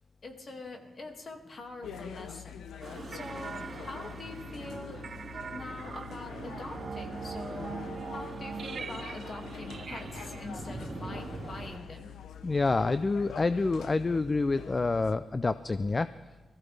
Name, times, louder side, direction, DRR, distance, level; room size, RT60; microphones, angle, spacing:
voice 1, 0.2-2.6 3.1-5.1 5.5-12.1, left 2 dB, 50° left, 4 dB, 2.1 m, -44 dB
sound 1, 1.8-15.1, left 8 dB, 85° left, 0.7 m, -45 dB
sound 2, 2.8-11.8, right 2 dB, 30° right, 3.4 m, -44 dB
sound 3, 3.1-12.0, right 6 dB, 55° right, 0.3 m, -43 dB
voice 2, 12.4-16.1, left 3 dB, 30° left, 14 dB, 0.4 m, -27 dB
19.0 x 14.5 x 3.4 m, 1.4 s
cardioid pair, 70°, 0 cm